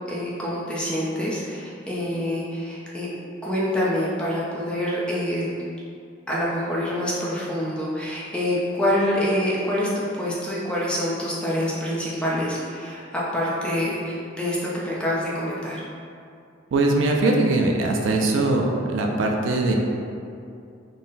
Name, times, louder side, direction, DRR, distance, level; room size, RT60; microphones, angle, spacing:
voice 1, 0.1-3.1 3.4-5.5 6.3-15.8, left 1 dB, 5° left, -7 dB, 0.6 m, -26 dB
voice 2, 16.7-19.7, right 2 dB, 75° right, 1 dB, 0.4 m, -21 dB
3.8 x 2.1 x 3.9 m, 2.5 s
head